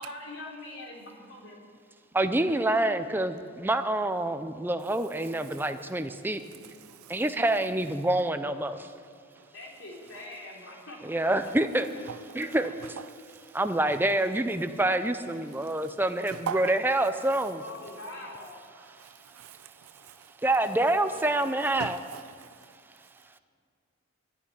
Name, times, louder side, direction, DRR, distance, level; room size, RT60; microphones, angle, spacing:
voice 1, 0.0-1.6 6.0-6.5 7.8-7.9 8.6-9.2 9.5-11.2 12.3-12.7 15.2-15.6 17.5-18.6 20.9-21.4, left 2 dB, 65° left, 3.5 m, -45 dB
voice 2, 2.1-6.4 7.1-8.9 11.0-11.8 12.3-12.7 13.5-17.6 20.4-22.0, right 1 dB, 10° right, 0.6 m, -27 dB
voice 3, 6.8-7.2 12.1-12.2 12.8-13.4 15.6-15.7 16.3-16.8 17.1-17.2 18.8-20.3 21.8-22.5, right 7 dB, 85° right, 0.5 m, -40 dB
12.5 x 11.5 x 10.0 m
head